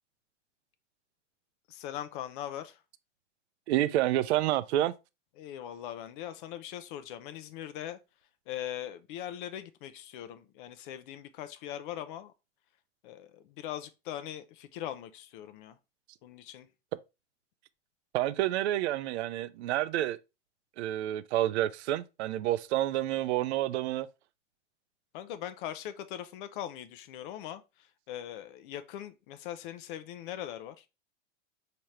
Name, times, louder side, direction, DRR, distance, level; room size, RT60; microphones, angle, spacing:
voice 1, 1.7-2.8 5.4-8.0 8.5-12.3 13.0-15.8 16.2-16.7 25.1-30.9, left 11 dB, 45° left, 0.4 m, -41 dB
voice 2, 3.7-4.9 18.1-20.2 20.8-24.1, right 14 dB, 65° right, 0.5 m, -29 dB
4.5 x 2.9 x 3.1 m
hypercardioid pair, 115°, 36 cm